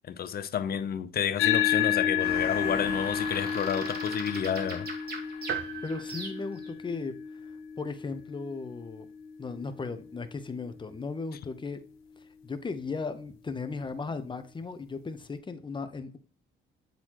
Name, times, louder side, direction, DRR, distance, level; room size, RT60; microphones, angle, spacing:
voice 1, 0.0-4.9, left 8 dB, 50° left, 0.6 m, -30 dB
sound 1, 1.4-10.1, left 9 dB, 85° left, 0.9 m, -31 dB
sound 2, 2.2-6.7, right 2 dB, 50° right, 2.1 m, -40 dB
sound 3, 5.5-7.3, right 9 dB, 70° right, 0.7 m, -39 dB
voice 2, 5.8-7.1 7.8-9.1 9.4-11.8 12.4-16.2, left 4 dB, 25° left, 0.8 m, -36 dB
8.0 x 4.0 x 3.0 m
cardioid pair, 90°, 20 cm